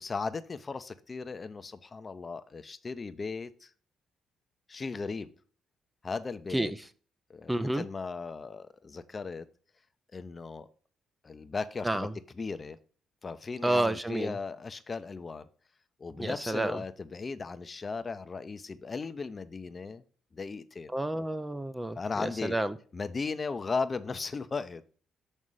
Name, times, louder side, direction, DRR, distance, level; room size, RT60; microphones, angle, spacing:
voice 1, 0.0-3.7 4.7-5.3 6.0-6.7 7.3-9.5 10.1-10.7 11.2-12.1 12.4-12.8 13.2-15.5 16.0-20.0 20.3-20.9 21.9-22.6 22.9-24.8, left 4 dB, 35° left, 0.7 m, -36 dB
voice 2, 7.5-7.8 11.8-12.1 13.6-14.3 16.2-16.8 20.9-22.8, right 1 dB, 10° right, 0.5 m, -30 dB
6.4 x 5.5 x 4.8 m
cardioid pair, 90°, 0 cm